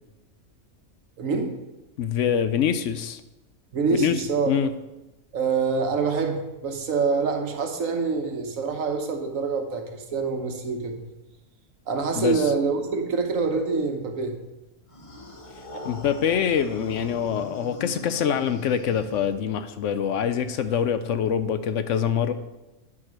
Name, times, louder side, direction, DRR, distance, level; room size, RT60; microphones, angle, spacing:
voice 1, 1.2-1.5 3.7-4.5 5.3-11.0 11.9-14.4 15.7-15.8, right 4 dB, 70° right, 5 dB, 1.4 m, -26 dB
voice 2, 2.0-3.2 4.0-4.7 12.1-12.4 15.8-22.3, left 8 dB, 65° left, 11 dB, 0.8 m, -25 dB
sound 1, 14.9-19.7, left 2 dB, 25° left, 0.9 m, -41 dB
9.6 x 4.9 x 6.2 m, 1.0 s
omnidirectional pair, 1.5 m